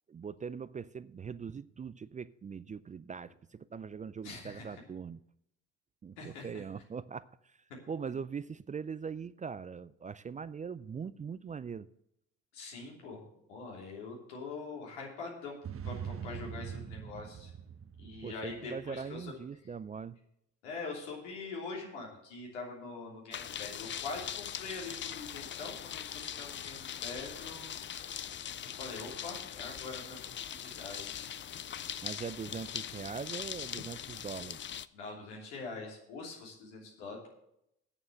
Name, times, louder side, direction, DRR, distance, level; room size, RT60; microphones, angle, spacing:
voice 1, 0.1-5.2 6.0-7.6 7.9-11.9 18.2-20.2 32.0-34.7, right 6 dB, 20° right, 0.4 m, -41 dB
voice 2, 4.2-4.8 6.2-6.5 12.5-13.2 13.5-15.6 15.8-17.5 18.0-19.3 20.6-27.7 28.6-30.2 30.5-31.3 34.9-37.3, left 4 dB, 85° left, 3.1 m, -43 dB
sound 1, 15.6-19.2, right 8 dB, 40° right, 1.0 m, -43 dB
sound 2, 23.3-34.9, left 9 dB, 35° left, 0.5 m, -41 dB
8.8 x 7.1 x 7.9 m
hypercardioid pair, 55°, 35 cm